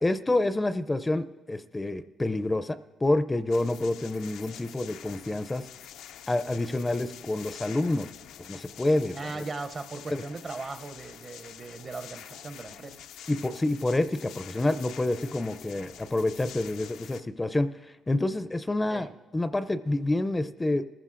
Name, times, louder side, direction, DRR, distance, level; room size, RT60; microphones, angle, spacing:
voice 1, 0.0-5.7 6.3-8.1 8.5-9.4 10.1-10.2 13.3-17.7 18.1-20.9, left 2 dB, 15° left, 13 dB, 0.4 m, -28 dB
sound 1, 3.5-17.2, left 10 dB, 85° left, 0.4 m, -47 dB
voice 2, 9.1-13.0 18.9-19.1, right 3 dB, 40° right, 9 dB, 0.6 m, -38 dB
20.0 x 15.0 x 2.5 m, 1.2 s
cardioid pair, 90°, 0 cm